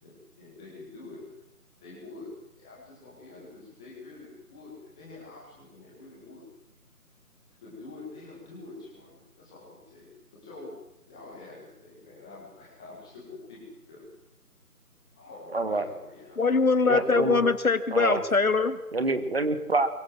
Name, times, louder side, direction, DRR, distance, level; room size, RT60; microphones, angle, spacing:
voice 1, 0.0-1.3 1.8-6.5 7.6-10.8 11.1-14.1 15.1-16.5 16.9-17.1, left 3 dB, 5° left, 1.8 m, -46 dB
voice 2, 15.5-15.9 16.9-17.4 17.9-18.2 18.9-19.9, right 2 dB, 40° right, 2.5 m, -26 dB
voice 3, 16.4-18.8, left 4 dB, 60° left, 2.3 m, -23 dB
23.5 x 18.0 x 7.7 m
figure-of-eight pair, 170°, 46 cm